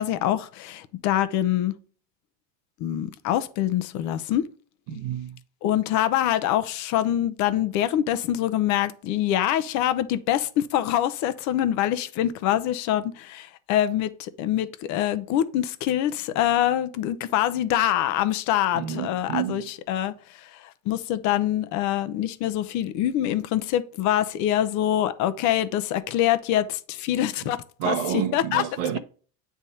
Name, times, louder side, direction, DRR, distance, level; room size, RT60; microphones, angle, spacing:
voice 1, 0.0-1.8 2.8-4.4 5.6-27.6 27.8-28.0 28.3-28.6, left 12 dB, 50° left, 0.7 m, -25 dB
voice 2, 4.9-5.4 18.7-19.7 27.8-29.0, right 10 dB, 65° right, 0.9 m, -29 dB
9.1 x 3.5 x 4.2 m
cardioid pair, 150°, 38 cm